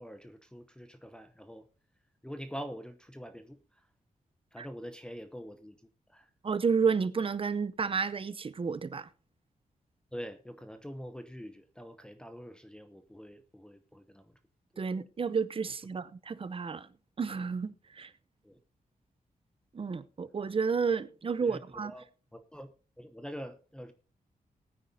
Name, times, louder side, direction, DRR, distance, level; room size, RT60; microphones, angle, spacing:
voice 1, 0.0-1.6 2.2-3.6 4.5-5.8 6.1-6.3 10.1-14.3 18.4-18.6 21.4-22.1 22.3-22.7 23.0-23.9, equal, 5° left, 0.8 m, -45 dB
voice 2, 6.4-9.1 14.8-16.9 17.2-18.1 19.7-21.9, right 5 dB, 40° right, 0.7 m, -31 dB
19.0 x 9.2 x 2.7 m
wide cardioid pair, 100°, 15 cm